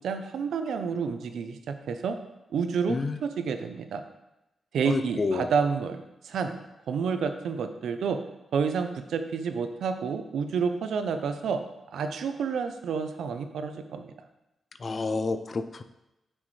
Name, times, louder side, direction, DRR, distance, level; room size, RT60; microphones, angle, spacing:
voice 1, 0.0-2.2 2.5-4.0 4.7-6.6 6.9-8.2 8.5-11.6 11.9-14.1, right 6 dB, 80° right, 8 dB, 0.6 m, -29 dB
voice 2, 2.9-3.2 4.8-5.5 14.8-15.8, left 3 dB, 35° left, 10 dB, 0.4 m, -29 dB
7.4 x 6.4 x 3.3 m, 0.92 s
wide cardioid pair, 155°, 0 cm